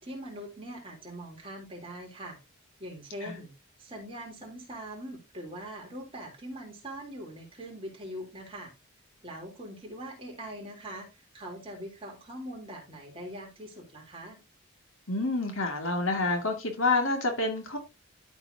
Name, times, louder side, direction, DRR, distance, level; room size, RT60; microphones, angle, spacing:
voice 1, 0.0-2.4 2.8-3.5 3.8-8.7 9.2-14.4, right 1 dB, 25° right, 3.4 m, -42 dB
voice 2, 15.1-17.8, left 3 dB, 65° left, 2.3 m, -28 dB
13.0 x 6.1 x 2.8 m
head